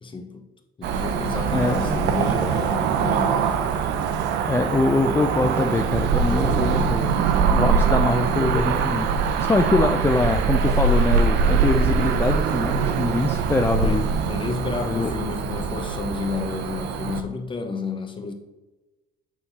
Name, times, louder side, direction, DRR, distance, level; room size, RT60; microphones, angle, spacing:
voice 1, 0.0-0.5 0.8-3.6 5.0-5.5 13.8-18.3, left 4 dB, 30° left, 1.0 m, -31 dB
Cricket / Motor vehicle (road), 0.8-17.2, right 5 dB, 85° right, 0.6 m, -23 dB
voice 2, 1.5-2.0 4.4-7.2 7.5-9.1 9.4-14.0 14.8-15.1, left 3 dB, 15° left, 0.4 m, -23 dB
8.3 x 3.8 x 4.1 m
cardioid pair, 110°, 17 cm